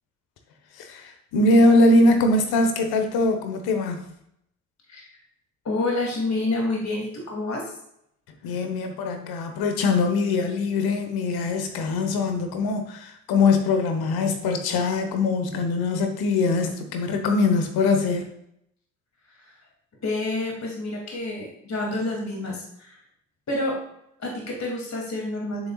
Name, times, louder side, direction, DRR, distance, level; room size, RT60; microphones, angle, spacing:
voice 1, 0.8-4.0 8.4-18.3, left 2 dB, 70° left, 6 dB, 1.3 m, -22 dB
voice 2, 5.6-7.7 19.3-19.5 20.0-23.0 23.5-23.8 24.2-25.7, left 2 dB, 45° left, -1 dB, 2.8 m, -28 dB
8.6 x 7.4 x 2.4 m, 0.74 s
hypercardioid pair, 40°, 38 cm